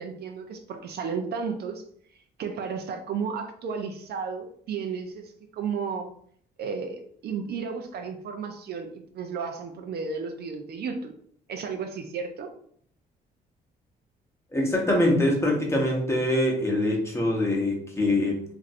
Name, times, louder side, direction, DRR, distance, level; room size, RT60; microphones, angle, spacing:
voice 1, 0.0-1.8 2.4-6.1 6.6-11.1 11.5-12.5, right 5 dB, 65° right, 5 dB, 0.5 m, -33 dB
voice 2, 14.5-18.4, left 1 dB, 15° left, -1 dB, 0.9 m, -24 dB
2.9 x 2.6 x 2.5 m, 0.62 s
cardioid pair, 85°, 18 cm